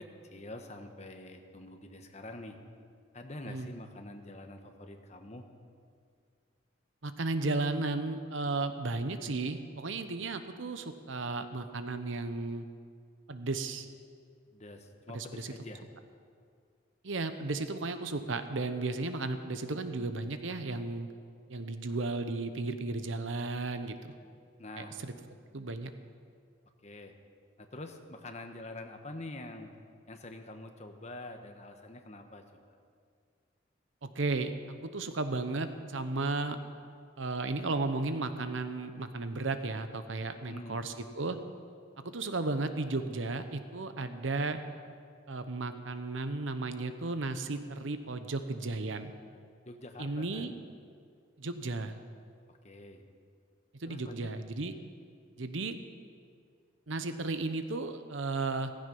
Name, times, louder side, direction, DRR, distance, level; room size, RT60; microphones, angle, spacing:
voice 1, 0.0-2.6 3.1-5.5 14.5-15.8 24.6-24.9 26.8-27.1 27.6-29.7 30.1-32.8 40.3-40.8 49.6-50.6 52.5-53.1 53.9-54.3, left 2 dB, 35° left, 5 dB, 1.2 m, -46 dB
voice 2, 7.0-12.7 13.3-13.9 15.1-15.5 17.0-21.1 21.5-24.1 24.8-25.1 25.5-25.9 34.0-34.5 34.8-36.6 37.2-41.4 42.0-44.6 45.3-49.1 50.0-50.5 51.4-52.0 53.8-54.7 55.4-55.8 56.9-58.7, right 3 dB, 75° right, 9 dB, 0.9 m, -34 dB
16.0 x 15.5 x 5.4 m, 2.2 s
head